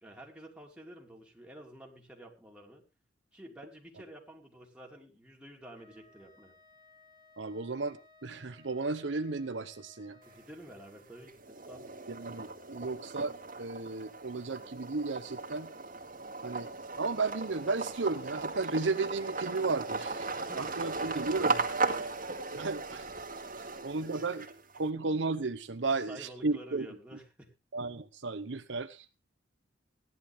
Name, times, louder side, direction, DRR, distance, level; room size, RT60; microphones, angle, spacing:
voice 1, 0.0-2.8 3.3-6.5 10.2-11.9 20.5-20.8 22.0-22.1 24.0-24.2 25.9-27.5, equal, 5° right, 3.0 m, -50 dB
Wind instrument woodwind instrument, 5.7-10.6, left 3 dB, 25° right, 1.5 m, -61 dB
voice 2, 7.4-10.2 12.1-15.7 16.4-16.7 17.0-21.6 22.5-23.1 23.8-24.4 24.7-26.9 27.7-29.1, right 3 dB, 75° right, 0.9 m, -34 dB
sound 1, 10.2-10.9 11.3-24.8, right 3 dB, 50° right, 2.0 m, -37 dB
16.5 x 11.0 x 3.5 m
head